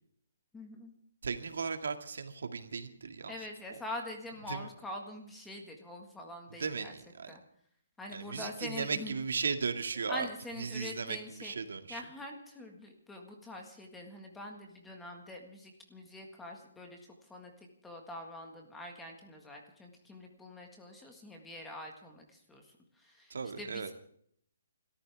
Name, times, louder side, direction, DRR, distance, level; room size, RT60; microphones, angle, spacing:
voice 1, 0.5-0.9 3.3-6.9 7.3-7.4 8.0-9.1 10.1-11.6 11.9-23.9, left 1 dB, 5° left, 2 dB, 1.7 m, -45 dB
voice 2, 1.2-3.3 4.5-4.7 6.6-7.3 8.1-10.3 10.6-12.0 23.3-23.9, right 5 dB, 70° right, 7 dB, 2.1 m, -36 dB
28.5 x 14.0 x 3.5 m, 0.64 s
hypercardioid pair, 175°, 0 cm